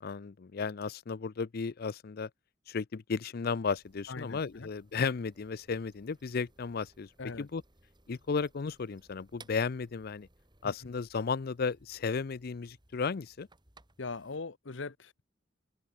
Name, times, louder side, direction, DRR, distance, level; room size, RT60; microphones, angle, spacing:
voice 1, 0.0-2.3 2.7-7.1 7.4-7.6 8.1-10.3 10.6-13.5, left 5 dB, 55° left, 0.5 m, -34 dB
sound 1, 3.7-14.4, right 3 dB, 25° right, 5.4 m, -63 dB
voice 2, 4.1-4.7 7.2-7.5 10.6-10.7 14.0-15.2, left 3 dB, 75° left, 1.0 m, -41 dB
head